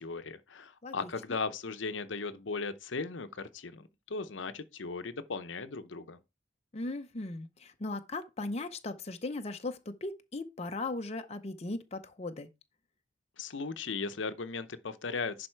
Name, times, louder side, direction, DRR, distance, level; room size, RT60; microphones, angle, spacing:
voice 1, 0.0-6.2 13.4-15.5, left 4 dB, 70° left, 0.8 m, -37 dB
voice 2, 6.7-12.5, left 2 dB, 35° left, 0.7 m, -38 dB
11.0 x 4.3 x 4.5 m
head